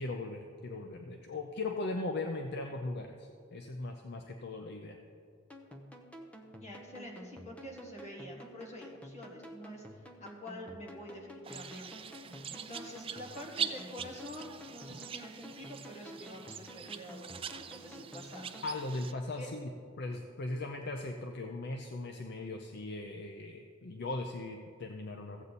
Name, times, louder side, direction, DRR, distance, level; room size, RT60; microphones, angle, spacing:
voice 1, 0.0-5.0 18.6-19.7 20.0-25.4, left 2 dB, 55° left, 4 dB, 0.6 m, -38 dB
sound 1, 5.5-18.7, equal, 5° left, 0.7 m, -51 dB
voice 2, 6.6-12.1 12.5-18.5 19.3-19.5, equal, 35° left, -1 dB, 1.7 m, -47 dB
sound 2, 11.4-19.1, right 7 dB, 25° right, 0.4 m, -43 dB
14.5 x 8.1 x 4.1 m, 2.3 s
head